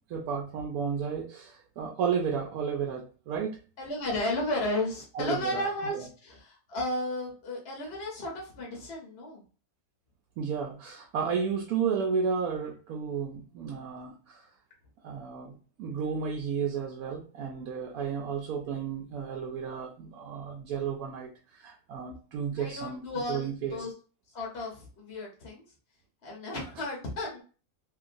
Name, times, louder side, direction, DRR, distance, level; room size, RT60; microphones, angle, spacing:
voice 1, 0.1-3.6 5.1-5.7 5.9-6.0 10.4-14.4 15.0-23.8, right 6 dB, 75° right, 0 dB, 1.0 m, -33 dB
voice 2, 3.8-9.4 22.6-23.9 24.3-25.6 26.2-27.4, left 1 dB, 45° left, -2 dB, 1.1 m, -33 dB
2.9 x 2.8 x 2.5 m, 0.37 s
omnidirectional pair, 1.6 m